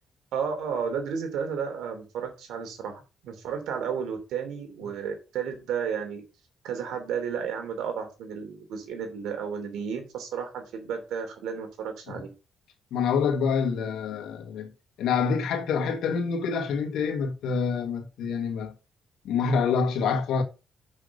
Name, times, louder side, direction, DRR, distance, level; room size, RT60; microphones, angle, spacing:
voice 1, 0.3-6.2 6.6-12.3, right 7 dB, 85° right, 3.0 m, -32 dB
voice 2, 12.9-14.7 15.0-18.7 19.3-20.4, left 5 dB, 80° left, 1.7 m, -26 dB
6.6 x 6.1 x 5.2 m
cardioid pair, 90°, 0 cm